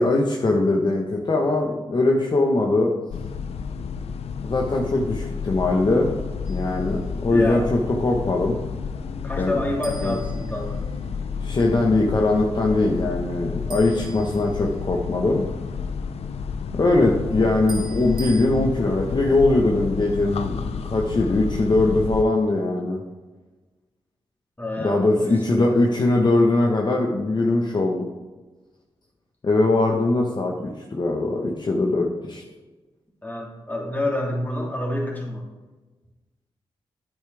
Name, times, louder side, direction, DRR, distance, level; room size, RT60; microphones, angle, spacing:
voice 1, 0.0-2.9 4.4-6.1 6.5-8.6 9.3-9.6 10.0-10.2 11.4-15.4 16.7-23.0 24.8-28.1 29.4-32.4, left 2 dB, 45° left, 0 dB, 1.2 m, -21 dB
sound 1, 3.1-22.2, left 6 dB, 75° left, 0.6 m, -31 dB
sound 2, 6.4-6.9 9.8-11.2 13.7-15.0 17.7-18.5, right 2 dB, 45° right, 2.8 m, -42 dB
voice 2, 7.3-7.7 9.2-10.8 24.6-25.8 33.2-35.4, left 1 dB, 15° left, -2 dB, 3.1 m, -28 dB
9.8 x 8.4 x 3.4 m, 1.2 s
cardioid pair, 55°, 11 cm